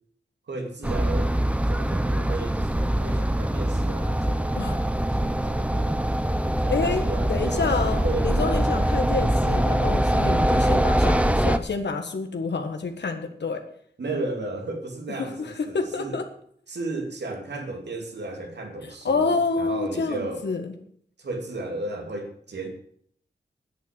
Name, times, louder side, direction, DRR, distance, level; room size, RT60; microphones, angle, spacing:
voice 1, 0.5-1.4 1.7-4.6 4.8-6.1 6.6-8.3 14.0-16.2 16.7-20.5 21.2-22.7, right 2 dB, 85° right, 3 dB, 2.6 m, -34 dB
sound 1, 0.8-11.6, right 1 dB, 5° right, 0.9 m, -23 dB
voice 2, 6.7-7.0 7.3-13.6 15.2-16.2 19.0-20.7, left 4 dB, 90° left, 6 dB, 1.6 m, -28 dB
10.0 x 8.8 x 8.1 m, 0.64 s
cardioid pair, 50°, 17 cm